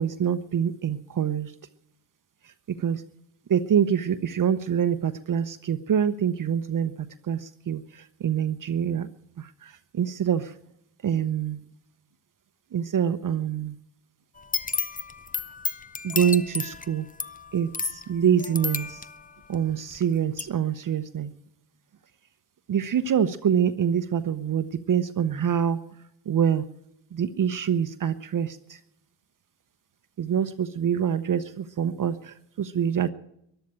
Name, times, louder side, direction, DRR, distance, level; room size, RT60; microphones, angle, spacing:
voice 1, 0.0-1.5 2.7-3.0 3.5-9.1 9.4-10.5 11.0-11.6 12.7-13.7 16.0-17.1 17.5-19.0 19.5-21.3 22.7-25.8 26.3-26.6 27.1-28.6 30.2-33.1, right 8 dB, 40° right, 11 dB, 0.9 m, -25 dB
sound 1, 14.4-20.0 20.4-20.5, left 4 dB, 15° left, 0.7 m, -32 dB
13.5 x 11.5 x 8.7 m, 0.74 s
supercardioid pair, 70°, 48 cm